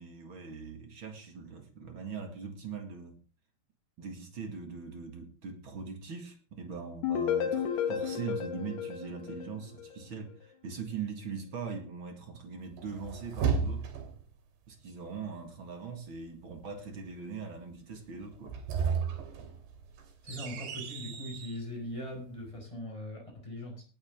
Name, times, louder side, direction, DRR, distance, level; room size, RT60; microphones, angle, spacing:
voice 1, 0.0-3.2 4.0-13.9 14.7-18.6, right 5 dB, 45° right, 1.8 m, -41 dB
sound 1, 7.0-10.0, left 8 dB, 70° left, 3.6 m, -32 dB
sound 2, 12.8-14.3 18.3-21.6, right 6 dB, 80° right, 4.9 m, -34 dB
voice 2, 20.2-23.8, left 1 dB, 5° left, 5.4 m, -40 dB
18.5 x 10.5 x 3.7 m
omnidirectional pair, 5.0 m